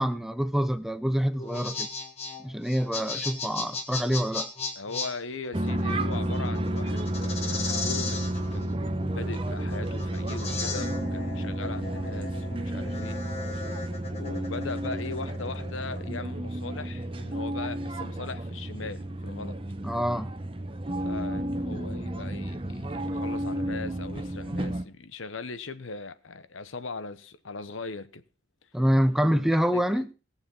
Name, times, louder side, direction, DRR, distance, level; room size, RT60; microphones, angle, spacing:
voice 1, 0.0-1.9 2.4-4.5 19.8-20.3 28.7-30.1, equal, ahead, 0.6 m, -26 dB
sound 1, 1.3-16.1, left 4 dB, 30° left, 1.6 m, -37 dB
voice 2, 4.8-13.2 14.0-19.6 21.0-28.2 29.3-30.0, left 3 dB, 90° left, 1.0 m, -39 dB
sound 2, 5.5-24.8, right 1 dB, 25° right, 1.0 m, -32 dB
18.5 x 7.1 x 5.5 m
head